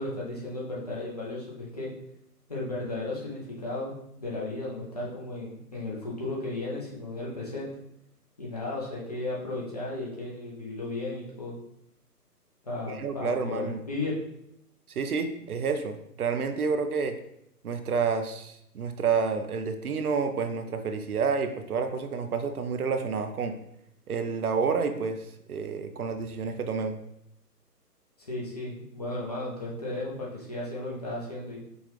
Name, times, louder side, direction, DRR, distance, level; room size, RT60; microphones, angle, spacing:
voice 1, 0.0-1.9 2.5-7.7 8.4-11.5 12.6-14.2 28.3-31.6, left 2 dB, 25° left, -5 dB, 0.6 m, -34 dB
voice 2, 12.9-13.8 14.9-17.2 17.6-23.6 24.1-27.0, right 5 dB, 65° right, 7 dB, 0.6 m, -29 dB
5.1 x 2.3 x 3.2 m, 0.77 s
figure-of-eight pair, 140°, 48 cm